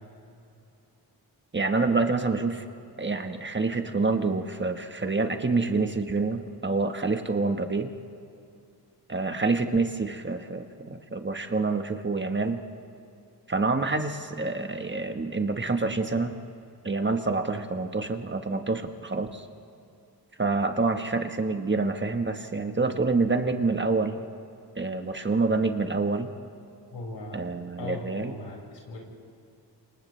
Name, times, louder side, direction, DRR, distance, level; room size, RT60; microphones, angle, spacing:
voice 1, 1.5-2.6 3.0-7.9 9.1-12.6 13.5-16.3 16.8-19.5 20.4-24.2 24.8-26.3 27.3-28.3, right 3 dB, 25° right, 6 dB, 1.3 m, -27 dB
voice 2, 26.9-27.4 27.8-29.0, left 2 dB, 85° left, -1 dB, 5.8 m, -38 dB
29.5 x 26.5 x 3.3 m, 2.6 s
cardioid pair, 90°, 41 cm